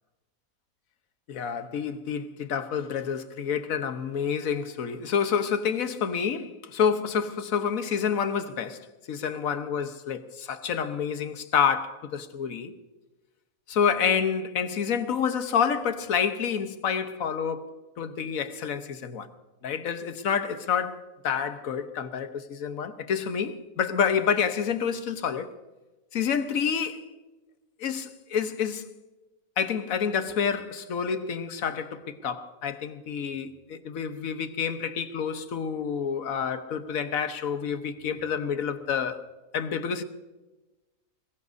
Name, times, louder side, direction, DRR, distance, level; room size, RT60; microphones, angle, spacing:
voice 1, 1.3-12.7 13.7-19.3 19.6-25.5 26.1-27.1 27.8-28.9 29.6-39.2 39.5-40.0, left 7 dB, 65° left, 1.4 m, -28 dB
22.0 x 21.5 x 2.7 m
omnidirectional pair, 1.6 m